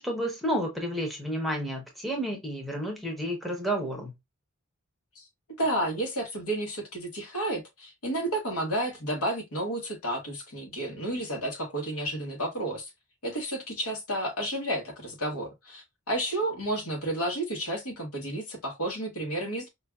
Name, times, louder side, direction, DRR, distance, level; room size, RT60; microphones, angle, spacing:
voice 1, 0.0-4.1, equal, ahead, 0.7 m, -31 dB
voice 2, 5.6-12.9 13.2-19.7, right 1 dB, 80° left, 1.2 m, -31 dB
4.7 x 2.6 x 2.3 m
head